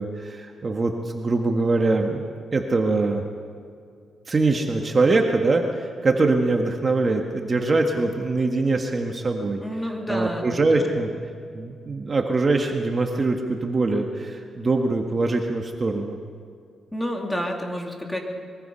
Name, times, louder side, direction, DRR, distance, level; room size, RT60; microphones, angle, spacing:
voice 1, 0.0-2.2 2.5-3.2 4.3-9.6 10.1-11.1 11.5-16.2, right 3 dB, 35° right, 2 dB, 1.7 m, -23 dB
voice 2, 9.6-11.0 16.9-18.2, equal, 10° left, 1 dB, 3.2 m, -30 dB
24.0 x 23.0 x 5.7 m, 2.3 s
cardioid pair, 105°, 0 cm